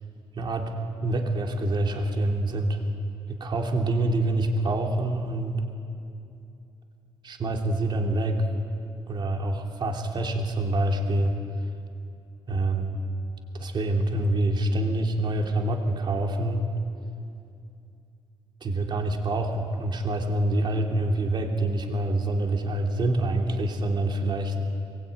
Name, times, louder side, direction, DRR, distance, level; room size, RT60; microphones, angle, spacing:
voice 1, 0.4-0.7 1.0-2.8 3.3-5.6 7.2-8.5 9.1-11.3 12.5-13.0 13.5-16.7 18.6-24.5, right 1 dB, 45° right, 2 dB, 3.1 m, -26 dB
22.5 x 21.0 x 9.2 m, 2.6 s
cardioid pair, 110°, 11 cm